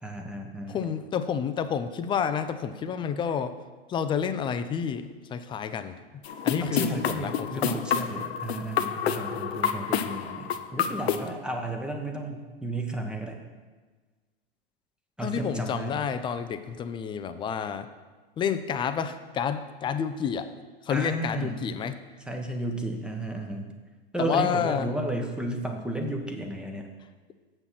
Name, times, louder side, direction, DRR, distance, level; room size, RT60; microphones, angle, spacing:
voice 1, 0.0-0.8 6.6-13.4 15.2-16.1 20.9-21.6 22.3-23.7 24.1-26.9, right 1 dB, 5° right, 2 dB, 1.0 m, -33 dB
voice 2, 0.7-3.6 3.9-7.8 15.2-17.9 18.4-20.5 20.8-22.0 24.2-24.9, left 7 dB, 15° left, 11 dB, 0.4 m, -30 dB
sound 1, 6.2-11.3, left 8 dB, 75° left, 0.7 m, -29 dB
7.8 x 6.1 x 5.8 m, 1.3 s
hypercardioid pair, 105°, 31 cm